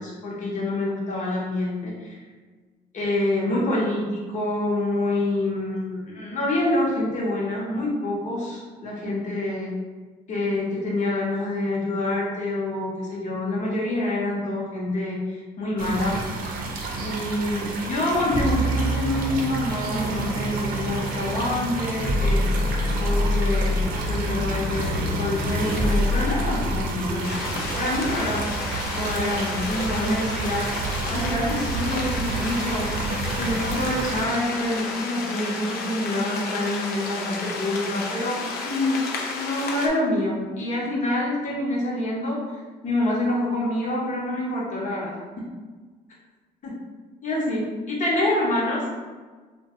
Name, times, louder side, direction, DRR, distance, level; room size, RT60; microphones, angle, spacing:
voice 1, 0.0-2.1 2.9-9.7 10.3-16.2 17.0-22.7 23.0-23.8 24.1-28.4 28.9-30.6 31.1-32.9 33.4-39.0 39.4-45.2 46.6-46.7 47.2-48.8, left 1 dB, 45° left, -4 dB, 0.9 m, -26 dB
sound 1, 15.8-34.2, right 3 dB, 60° right, 0.5 m, -31 dB
sound 2, 18.3-29.1, left 1 dB, 5° left, 0.8 m, -27 dB
sound 3, 27.2-39.9, left 3 dB, 70° left, 0.5 m, -32 dB
2.8 x 2.2 x 2.9 m, 1.4 s
cardioid pair, 110°, 17 cm